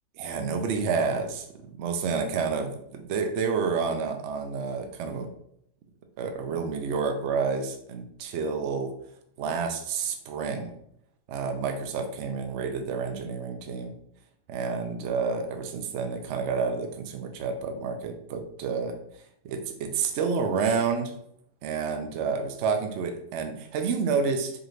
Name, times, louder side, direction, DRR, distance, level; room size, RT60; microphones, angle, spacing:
voice 1, 0.2-1.5 1.8-5.3 6.2-8.9 9.4-10.7 11.3-13.9 14.5-19.0 19.4-21.1 21.6-24.5, right 5 dB, 65° right, 6 dB, 0.7 m, -29 dB
4.9 x 2.5 x 3.1 m, 0.72 s
omnidirectional pair, 1.6 m